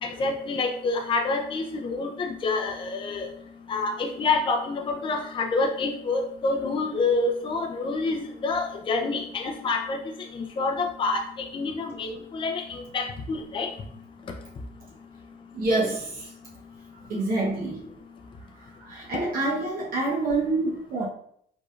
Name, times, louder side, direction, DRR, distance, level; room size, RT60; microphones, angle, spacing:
voice 1, 0.0-3.3 3.7-10.0 10.3-13.7, left 3 dB, 30° left, 2 dB, 0.6 m, -27 dB
voice 2, 15.5-16.3 17.1-17.8 18.6-21.0, right 2 dB, 60° right, -3 dB, 1.1 m, -27 dB
4.9 x 3.7 x 2.4 m, 0.66 s
cardioid pair, 110°, 17 cm